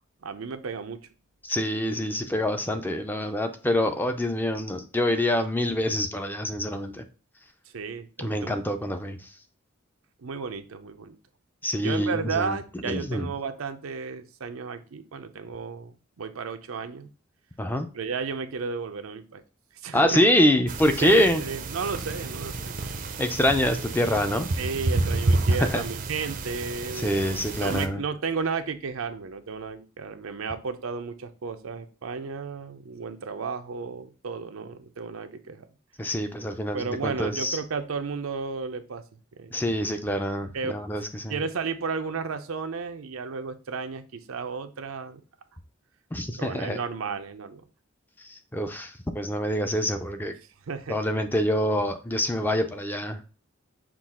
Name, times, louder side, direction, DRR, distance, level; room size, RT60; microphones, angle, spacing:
voice 1, 0.2-1.1 7.7-8.6 10.2-11.2 11.8-17.1 17.9-19.4 19.8-20.2 21.0-22.9 24.6-35.7 36.7-39.0 39.3-39.6 40.5-40.8 41.3-45.2 46.4-47.6 50.7-51.0, right 5 dB, 90° right, 8 dB, 0.6 m, -33 dB
voice 2, 1.4-7.0 8.2-9.2 11.6-12.5 12.9-13.3 17.6-17.9 19.9-21.4 23.2-24.5 25.7-25.8 27.0-28.0 36.0-37.6 39.5-41.4 46.1-46.8 48.5-50.3 50.9-53.2, left 1 dB, 10° left, 7 dB, 0.5 m, -25 dB
sound 1, 20.7-27.9, right 2 dB, 45° right, 0.5 m, -30 dB
6.0 x 2.4 x 3.6 m, 0.34 s
head